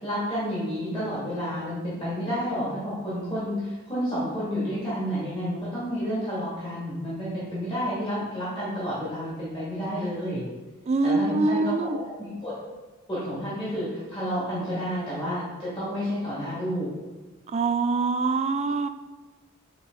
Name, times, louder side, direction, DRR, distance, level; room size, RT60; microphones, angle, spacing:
voice 1, 0.0-10.4 11.0-12.5 13.1-16.9, equal, 25° left, -10 dB, 2.3 m, -30 dB
voice 2, 10.9-12.0 17.5-18.9, right 3 dB, 30° right, 9 dB, 0.4 m, -24 dB
8.5 x 4.2 x 4.0 m, 1.3 s
head